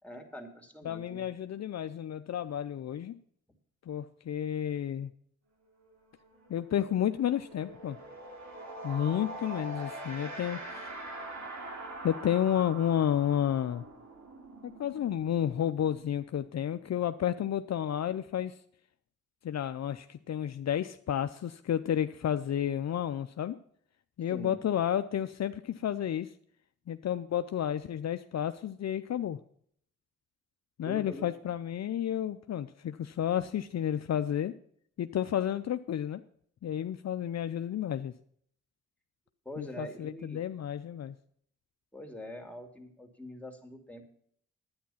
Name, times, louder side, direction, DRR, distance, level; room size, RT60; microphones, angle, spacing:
voice 1, 0.0-1.2 24.3-24.6 30.8-31.3 39.4-40.4 41.9-44.0, equal, 5° left, 3 dB, 2.7 m, -44 dB
voice 2, 0.8-3.2 3.9-5.1 6.5-8.0 8.8-10.6 12.0-13.8 14.6-18.5 19.4-23.6 24.2-26.3 26.9-29.4 30.8-34.5 35.0-36.2 36.6-38.1 39.6-41.1, left 10 dB, 60° left, 10 dB, 0.6 m, -31 dB
sound 1, 5.8-6.0 6.2-16.8, right 1 dB, 65° right, 3.0 m, -44 dB
10.0 x 9.5 x 5.6 m, 0.63 s
cardioid pair, 55°, 30 cm